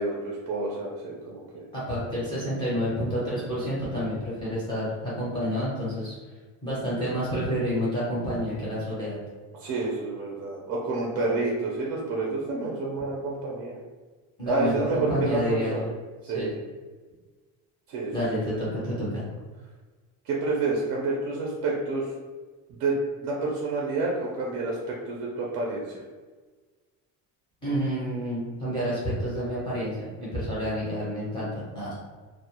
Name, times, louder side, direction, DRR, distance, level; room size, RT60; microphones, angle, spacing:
voice 1, 0.0-1.6 9.6-13.7 14.5-15.9 16.3-16.6 17.9-18.1 20.3-22.1 22.8-22.9 23.2-26.0, right 3 dB, 45° right, -3 dB, 0.4 m, -29 dB
voice 2, 1.7-6.2 6.6-9.2 14.4-15.9 16.2-16.5 18.1-19.2 27.6-31.9, equal, 15° left, -9 dB, 0.5 m, -29 dB
2.2 x 2.0 x 2.8 m, 1.3 s
cardioid pair, 180°, 37 cm